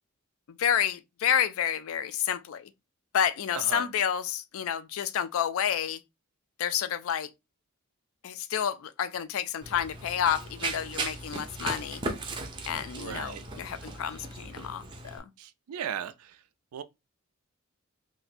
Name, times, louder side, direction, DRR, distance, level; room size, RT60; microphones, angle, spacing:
voice 1, 0.5-2.7 3.1-6.0 6.6-7.3 8.2-12.0 12.7-15.2, left 9 dB, 70° left, 0.3 m, -29 dB
Run, 9.6-15.2, right 2 dB, 20° right, 0.4 m, -37 dB
voice 2, 13.0-13.4 15.4-16.1 16.7-16.8, right 8 dB, 85° right, 0.4 m, -36 dB
2.6 x 2.1 x 4.0 m
head